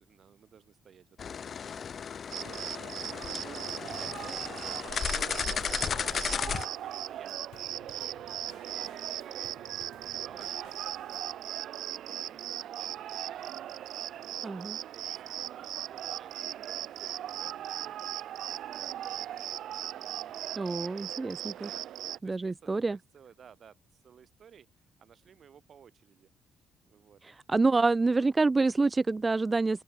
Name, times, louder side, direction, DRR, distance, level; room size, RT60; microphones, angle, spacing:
voice 1, 0.0-1.6 2.2-3.4 3.8-5.2 6.0-8.5 8.8-13.6 14.2-21.1 21.7-26.3 26.8-27.2 27.8-27.9, right 8 dB, 55° right, 7.8 m, -57 dB
sound 1, 1.2-6.7, left 7 dB, 50° left, 1.8 m, -34 dB
Cricket, 2.3-22.2, right 11 dB, 75° right, 0.3 m, -38 dB
Drum kit / Snare drum / Bass drum, 3.7-11.4, left 13 dB, 85° left, 7.2 m, -57 dB
voice 2, 14.4-14.8 20.6-21.7 22.2-23.0 27.5-29.8, right 3 dB, 25° right, 0.6 m, -27 dB
open air
cardioid pair, 90°, 0 cm